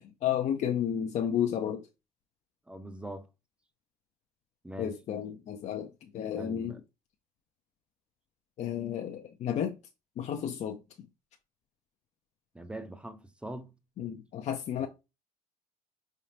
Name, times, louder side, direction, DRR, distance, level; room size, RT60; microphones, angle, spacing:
voice 1, 0.0-1.9 4.8-6.8 8.6-9.8 10.2-10.8 14.0-14.9, left 9 dB, 50° left, 0.5 m, -32 dB
voice 2, 2.7-3.3 4.6-5.0 6.3-6.8 12.5-13.7 14.8-14.9, right 1 dB, 5° right, 0.6 m, -42 dB
4.6 x 3.3 x 2.8 m
supercardioid pair, 75°, 15 cm